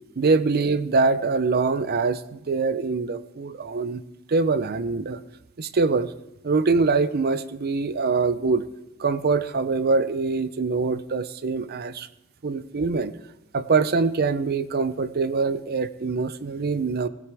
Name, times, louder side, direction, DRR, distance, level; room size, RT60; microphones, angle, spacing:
voice 1, 0.2-4.0 4.3-5.2 5.6-6.1 6.4-8.6 9.0-12.1 12.4-13.1 13.5-17.1, right 4 dB, 50° right, 14 dB, 0.6 m, -24 dB
16.5 x 16.0 x 3.5 m, 0.96 s
head